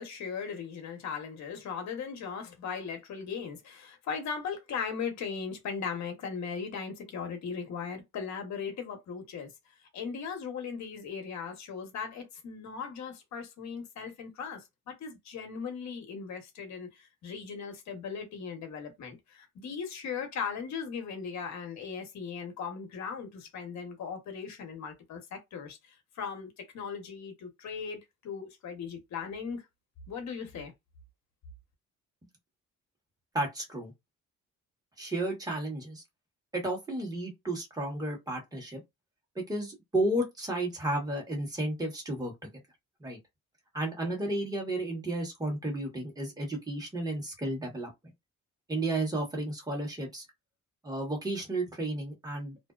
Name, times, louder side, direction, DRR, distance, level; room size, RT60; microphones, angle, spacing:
voice 1, 0.0-9.5 9.9-29.7 30.1-30.7, left 6 dB, 65° left, 1.0 m, -38 dB
voice 2, 33.3-33.9 35.0-36.0 36.5-38.8 39.3-42.5 43.0-43.2 43.7-47.9 48.7-50.2 50.8-52.6, right 1 dB, 10° right, 1.2 m, -32 dB
2.6 x 2.1 x 2.4 m
cardioid pair, 90°, 30 cm